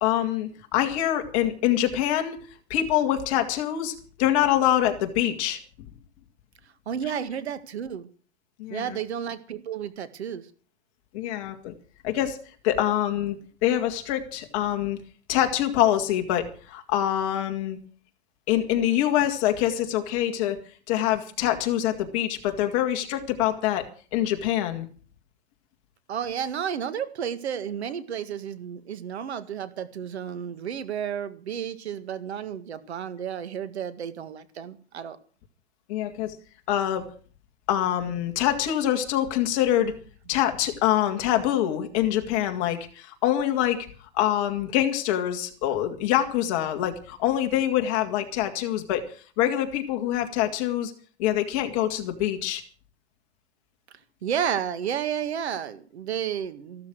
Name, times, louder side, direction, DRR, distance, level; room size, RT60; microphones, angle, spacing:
voice 1, 0.0-2.4 2.7-5.6 8.6-9.0 11.1-11.7 12.0-12.4 12.6-13.4 13.6-15.0 15.3-17.8 18.5-20.6 20.9-23.8 24.1-24.9 35.9-36.4 36.7-37.0 37.7-39.9 40.3-43.9 44.1-49.0 49.4-50.9 51.2-52.6, left 12 dB, 30° left, 5 dB, 2.2 m, -25 dB
voice 2, 6.9-8.1 8.7-10.5 26.1-35.2 54.2-56.9, right 8 dB, 75° right, 13 dB, 1.9 m, -32 dB
15.0 x 13.0 x 6.4 m, 0.41 s
hypercardioid pair, 170°, 33 cm